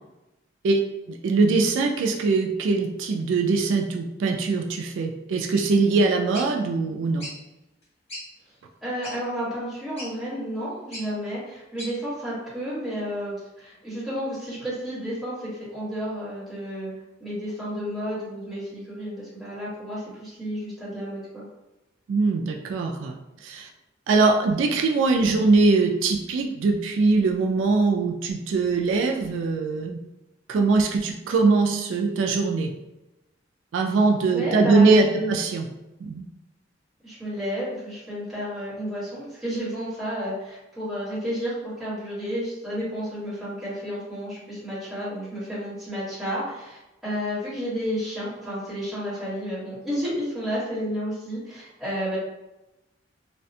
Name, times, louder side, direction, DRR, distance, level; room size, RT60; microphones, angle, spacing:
voice 1, 1.1-7.3 22.1-23.7 24.1-30.0 30.5-32.7 33.7-35.6 36.0-36.2, right 3 dB, 80° right, 1 dB, 0.3 m, -22 dB
sound 1, 5.5-5.7 6.3-6.5 7.2-7.4 7.8-7.9 8.1-8.2 9.0-9.2 10.0-10.1 10.9-11.1 11.8-11.9, left 1 dB, 35° left, 1.3 m, -37 dB
voice 2, 8.8-16.9 17.2-21.4 34.3-35.3 37.0-52.2, equal, ahead, -12 dB, 1.4 m, -31 dB
2.4 x 2.1 x 2.6 m, 0.97 s
head